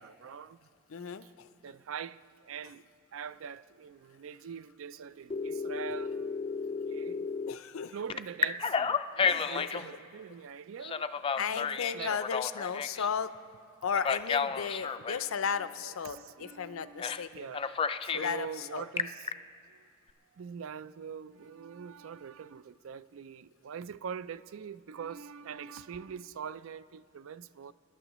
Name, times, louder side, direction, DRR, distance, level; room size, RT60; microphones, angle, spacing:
voice 1, 0.0-0.7 1.2-1.3 1.6-6.3 6.6-7.3 7.9-11.1 11.3-12.2 14.6-19.9 20.3-27.7, right 7 dB, 75° right, 0.4 m, -44 dB
voice 2, 0.9-1.2 7.5-7.9 9.3-9.9 11.4-13.3 13.8-17.4 18.1-18.5 18.7-18.8, left 6 dB, 90° left, 0.5 m, -34 dB
Telephone, 5.3-7.6 8.1-9.9 10.8-13.1 13.9-15.2 17.0-17.2 17.5-18.3 18.8-19.3, left 6 dB, 25° left, 0.3 m, -32 dB
28.0 x 11.5 x 3.0 m
head